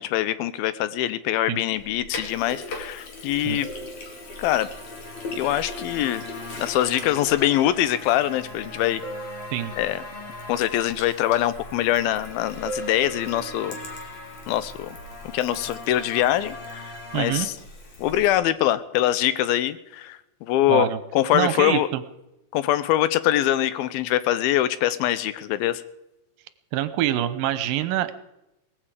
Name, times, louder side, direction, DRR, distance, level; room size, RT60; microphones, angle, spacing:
voice 1, 0.0-3.7 4.4-4.7 5.3-6.3 6.6-9.0 9.8-10.0 10.5-13.8 14.5-15.0 15.3-17.5 18.0-21.9 22.5-25.8, left 13 dB, 80° left, 15 dB, 2.5 m, -23 dB
Sink (filling or washing), 1.7-18.4, left 2 dB, 50° left, 3.6 m, -41 dB
sound 1, 3.6-4.7 9.0-10.2 12.7-13.9 17.2-17.4, right 3 dB, 10° right, 2.2 m, -39 dB
sound 2, 3.9-17.4, left 2 dB, 30° left, 1.1 m, -41 dB
voice 2, 17.1-17.5 20.7-21.0 21.3-22.0 26.7-28.1, right 12 dB, 80° right, 12 dB, 2.4 m, -25 dB
19.0 x 15.0 x 5.0 m, 0.90 s
omnidirectional pair, 4.3 m